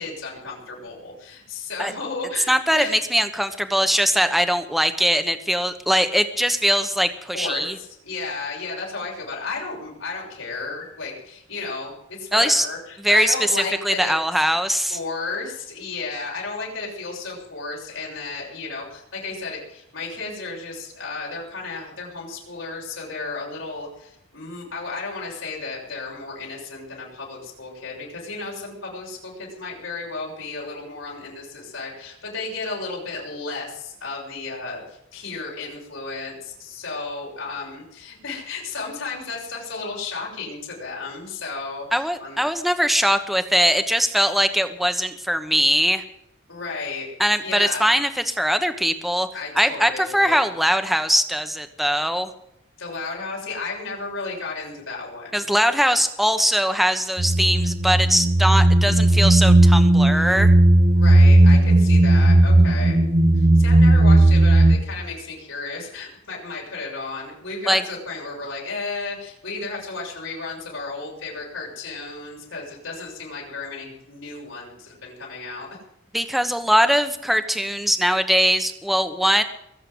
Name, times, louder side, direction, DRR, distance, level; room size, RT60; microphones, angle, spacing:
voice 1, 0.0-3.0 7.3-14.2 14.9-42.4 46.5-47.1 47.4-47.9 49.3-50.4 52.8-55.4 60.9-63.0 63.4-75.7, left 3 dB, 80° left, -3 dB, 6.8 m, -33 dB
voice 2, 2.5-7.8 12.3-12.7 13.0-15.0 41.9-46.0 47.2-49.3 49.5-52.3 55.3-60.5 67.7-67.8 76.1-79.4, equal, ahead, 9 dB, 1.1 m, -21 dB
sound 1, 57.2-64.8, right 1 dB, 45° right, 1.2 m, -15 dB
22.5 x 7.7 x 8.0 m, 0.79 s
head